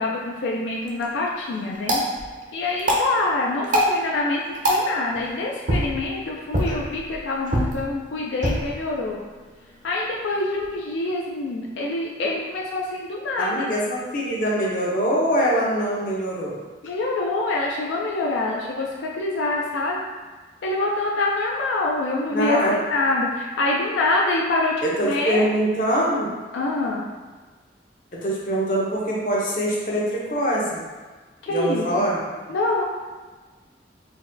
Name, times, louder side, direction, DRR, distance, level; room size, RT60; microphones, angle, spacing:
voice 1, 0.0-2.0 2.5-9.2 9.8-13.7 16.8-20.0 20.6-25.5 26.5-27.1 31.4-32.1 32.5-32.8, left 2 dB, 85° left, -2 dB, 0.4 m, -25 dB
sound 1, 0.7-10.8, equal, 45° right, 0.5 m, -28 dB
voice 2, 13.4-16.6 22.3-22.7 24.8-26.3 28.2-30.8 31.5-32.2, equal, 45° left, -5 dB, 0.6 m, -23 dB
3.9 x 2.1 x 2.5 m, 1.3 s
head